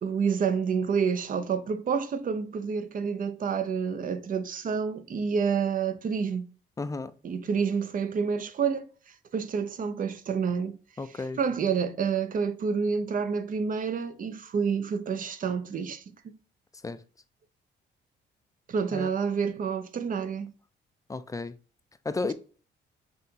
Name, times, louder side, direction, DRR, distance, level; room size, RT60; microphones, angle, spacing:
voice 1, 0.0-6.5 7.2-10.8 11.4-16.4 18.7-20.5, right 6 dB, 45° right, 0.5 m, -29 dB
voice 2, 6.8-7.2 11.0-11.4 16.8-17.0 18.9-19.1 21.1-21.6 22.0-22.3, left 3 dB, 15° left, 0.3 m, -33 dB
5.5 x 2.8 x 2.7 m
cardioid pair, 90°, 20 cm